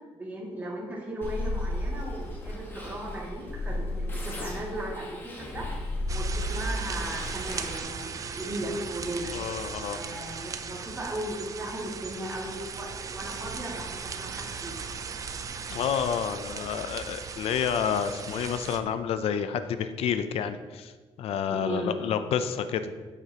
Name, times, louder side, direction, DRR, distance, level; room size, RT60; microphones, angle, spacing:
voice 1, 0.1-5.7 6.1-9.3 9.9-14.8 21.5-21.9, right 1 dB, 15° right, -5 dB, 2.2 m, -36 dB
sound 1, 1.2-7.8, left 1 dB, 20° left, 1.4 m, -34 dB
sound 2, 6.1-18.8, right 5 dB, 35° right, 0.5 m, -38 dB
voice 2, 9.3-10.0 15.7-20.9 21.2-22.8, left 8 dB, 70° left, 10 dB, 0.5 m, -29 dB
9.3 x 8.1 x 2.9 m, 1.4 s
cardioid pair, 155°, 10 cm